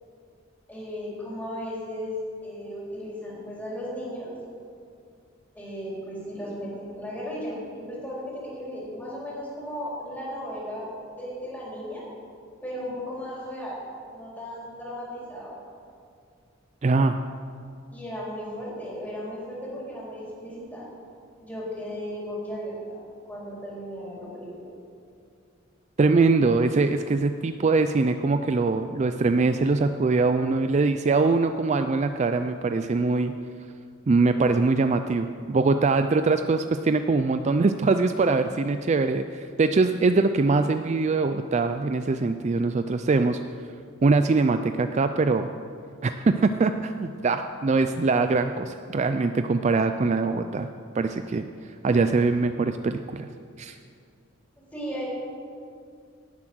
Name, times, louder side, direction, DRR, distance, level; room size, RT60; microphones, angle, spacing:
voice 1, 0.7-4.3 5.5-10.9 11.2-12.0 12.6-15.6 17.9-20.9 21.4-23.0 23.3-24.7 54.7-55.1, equal, 10° left, -6 dB, 4.2 m, -35 dB
voice 2, 16.8-17.2 26.0-33.3 34.1-43.4 44.0-45.5 46.0-50.7 50.9-51.4 51.8-53.3 53.6-53.8, right 3 dB, 35° right, 9 dB, 0.4 m, -23 dB
18.0 x 7.3 x 6.3 m, 2.3 s
head